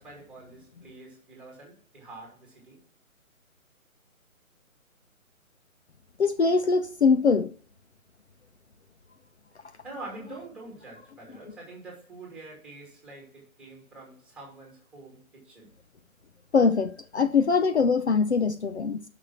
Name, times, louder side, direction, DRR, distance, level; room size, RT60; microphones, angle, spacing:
voice 1, 0.0-2.8 9.8-15.7, right 2 dB, ahead, 2.4 m, -46 dB
voice 2, 6.2-7.5 16.5-19.0, left 5 dB, 50° left, 0.7 m, -22 dB
9.6 x 6.2 x 5.8 m
figure-of-eight pair, 145°, 42 cm